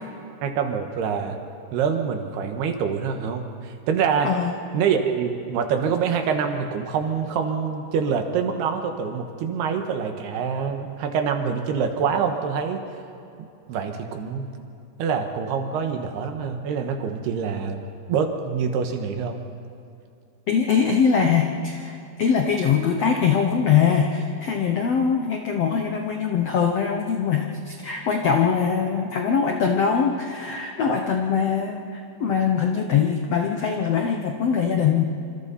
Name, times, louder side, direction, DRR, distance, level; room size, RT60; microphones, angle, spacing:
voice 1, 0.4-1.4 1.7-4.3 4.7-12.8 13.4-14.5 15.0-17.8 18.1-19.4, right 6 dB, 75° right, 5 dB, 3.4 m, -25 dB
voice 2, 20.5-35.0, left 6 dB, 90° left, 2 dB, 1.4 m, -22 dB
27.0 x 26.5 x 4.2 m, 2.6 s
omnidirectional pair, 4.7 m